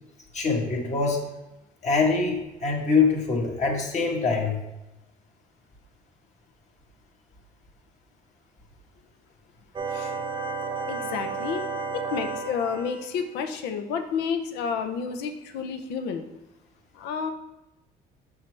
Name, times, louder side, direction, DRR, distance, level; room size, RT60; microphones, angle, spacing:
voice 1, 0.3-1.3 1.8-4.6, left 4 dB, 45° left, 0 dB, 1.5 m, -24 dB
sound 1, 9.8-13.0, right 4 dB, 30° right, 0.6 m, -32 dB
voice 2, 9.9-10.2 10.9-11.7 11.9-16.2 16.9-17.3, left 6 dB, 85° left, 7 dB, 0.7 m, -30 dB
6.4 x 5.7 x 3.3 m, 0.96 s
cardioid pair, 110°, 17 cm